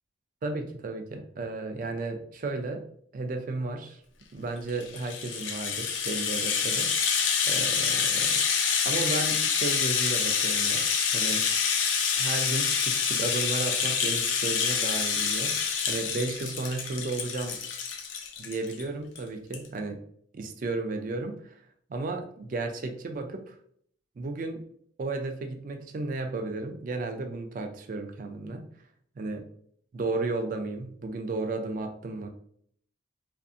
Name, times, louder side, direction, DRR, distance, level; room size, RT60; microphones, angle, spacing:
voice 1, 0.4-2.8 3.1-4.0 4.3-6.9 7.5-8.4 8.9-11.5 12.2-17.6 18.4-20.0 20.3-21.6 21.9-23.5 24.2-24.6 25.0-28.7 29.2-29.4 29.9-32.3, right 3 dB, 40° right, 5 dB, 0.3 m, -33 dB
Rattle (instrument), 4.7-18.8 19.1-19.2 19.5-19.7, left 6 dB, 70° left, 0.4 m, -27 dB
2.5 x 2.5 x 2.3 m, 0.64 s
head